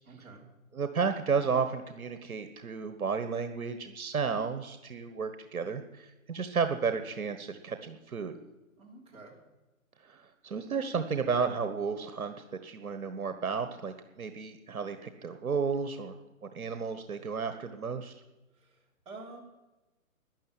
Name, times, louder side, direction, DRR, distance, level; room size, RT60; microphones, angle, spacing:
voice 1, 0.0-0.4 8.8-9.3 18.6-19.4, right 3 dB, 15° right, -4 dB, 3.4 m, -49 dB
voice 2, 0.7-8.3 10.0-12.4 12.6-18.1, right 5 dB, 80° right, 9 dB, 1.4 m, -33 dB
12.0 x 10.5 x 9.0 m, 1.1 s
hypercardioid pair, 150°, 42 cm